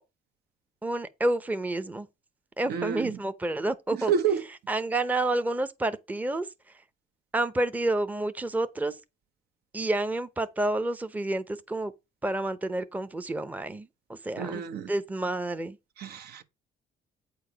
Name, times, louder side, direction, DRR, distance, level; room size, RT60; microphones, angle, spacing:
voice 1, 0.8-2.1 2.6-4.1 4.7-6.5 7.3-9.0 9.7-11.9 12.2-15.8, right 2 dB, 10° right, 0.6 m, -29 dB
voice 2, 2.7-3.1 4.1-4.4 14.4-14.9 16.0-16.4, right 7 dB, 70° right, 1.0 m, -28 dB
8.4 x 4.7 x 4.9 m
cardioid pair, 110°, 17 cm